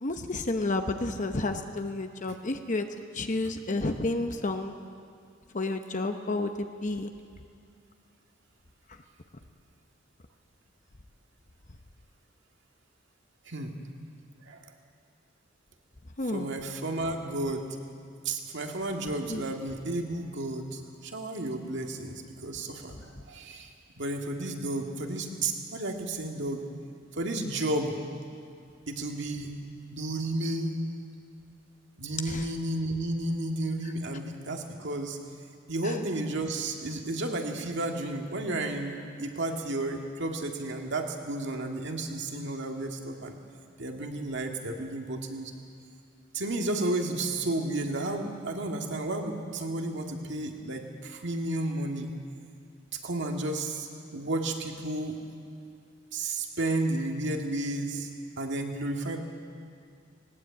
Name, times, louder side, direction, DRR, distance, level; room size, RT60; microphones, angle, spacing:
voice 1, 0.0-2.9 3.1-4.7 5.5-7.1 16.2-16.5 19.3-19.4 32.3-32.4 35.8-36.0, left 2 dB, 40° left, 6 dB, 0.9 m, -31 dB
voice 2, 13.4-13.8 14.5-14.7 16.3-17.8 18.2-23.7 24.0-26.6 27.1-28.0 28.9-29.6 29.9-30.8 32.0-35.2 35.7-43.4 43.8-45.5 46.3-52.1 52.9-55.2 56.1-58.1 58.4-59.2, right 2 dB, 65° right, 3 dB, 2.2 m, -32 dB
19.5 x 19.0 x 8.5 m, 2.3 s
head